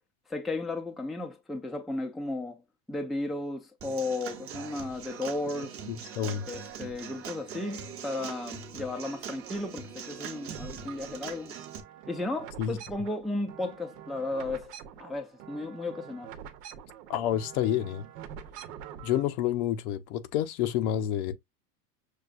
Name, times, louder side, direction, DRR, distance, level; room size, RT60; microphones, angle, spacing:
voice 1, 0.3-2.6 2.9-5.8 6.5-11.6 12.1-16.3, left 2 dB, ahead, 0.4 m, -34 dB
Human voice / Acoustic guitar / Drum, 3.8-11.8, right 7 dB, 30° right, 0.9 m, -42 dB
sound 1, 3.9-5.4 5.8-7.4 7.7-9.0 9.3-19.2, right 9 dB, 85° right, 0.9 m, -47 dB
voice 2, 5.9-6.5 12.6-12.8 17.1-18.1 19.0-21.3, left 11 dB, 70° left, 0.9 m, -29 dB
6.5 x 2.3 x 2.4 m
supercardioid pair, 125°, 46 cm